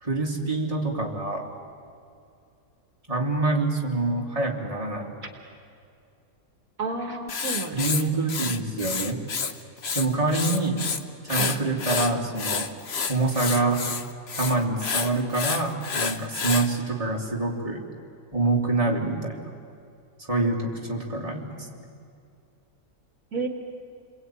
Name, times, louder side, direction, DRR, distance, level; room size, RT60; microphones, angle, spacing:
voice 1, 0.0-1.5 3.1-5.2 7.7-9.2 9.9-10.8 11.2-12.7 13.1-13.9 14.3-17.8 18.3-19.5 20.2-21.9, right 2 dB, 25° right, -1 dB, 3.2 m, -26 dB
voice 2, 6.8-8.1 11.4-11.8 23.3-23.5, right 4 dB, 65° right, 4 dB, 2.0 m, -32 dB
Writing, 7.3-9.5 9.8-11.0 11.3-16.7, left 5 dB, 45° left, 1.3 m, -29 dB
29.0 x 22.0 x 9.3 m, 2.5 s
omnidirectional pair, 1.6 m